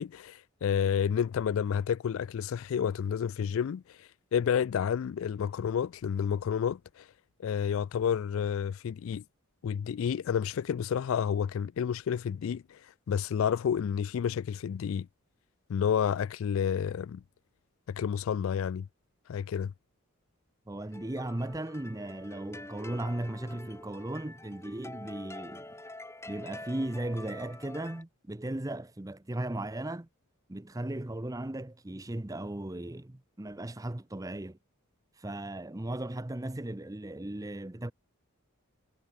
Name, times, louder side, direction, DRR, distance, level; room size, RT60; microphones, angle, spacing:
voice 1, 0.0-7.1 7.4-9.2 9.6-12.8 13.1-15.1 15.7-17.2 17.9-18.9 19.3-19.7, left 7 dB, 65° left, 0.3 m, -30 dB
voice 2, 20.7-25.7 26.3-30.1 30.5-34.6 35.2-37.9, right 1 dB, 15° right, 0.6 m, -36 dB
sound 1, 20.8-28.0, left 2 dB, 10° left, 1.6 m, -46 dB
head